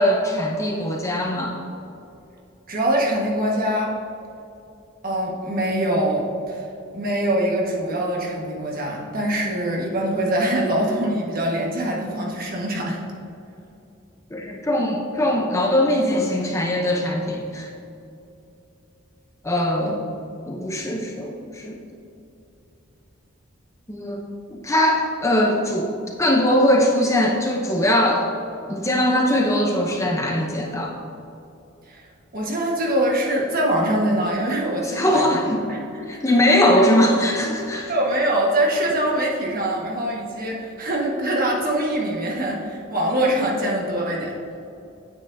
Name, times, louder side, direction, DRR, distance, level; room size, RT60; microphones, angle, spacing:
voice 1, 0.0-1.5 14.3-17.7 19.4-20.0 20.5-21.8 23.9-28.3 28.7-31.0 34.8-35.6 36.1-37.9, left 1 dB, 15° left, -1 dB, 0.7 m, -21 dB
voice 2, 2.7-3.9 5.0-6.6 6.9-13.0 19.8-19.9 31.9-32.1 32.3-35.4 35.7-35.8 36.1-36.2 37.9-44.3, right 1 dB, 45° right, -2 dB, 1.4 m, -23 dB
9.4 x 9.0 x 2.7 m, 2.7 s
head